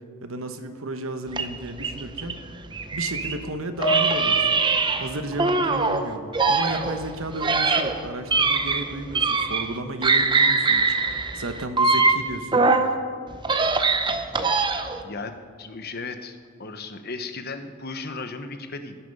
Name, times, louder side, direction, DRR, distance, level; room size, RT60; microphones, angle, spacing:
voice 1, 0.2-2.3 2.9-4.6 5.0-12.7, right 2 dB, 70° right, 8 dB, 1.1 m, -33 dB
sound 1, 1.3-3.4 3.8-6.0 6.3-9.8 10.0-12.9 13.3-15.0, right 4 dB, 20° right, 0.7 m, -22 dB
Piano, 3.8-6.4 6.7-7.0 7.8-7.9, right 1 dB, 70° left, 4.7 m, -32 dB
voice 2, 15.0-19.0, left 3 dB, 45° left, 8 dB, 1.0 m, -36 dB
18.0 x 10.0 x 5.4 m, 2.2 s
head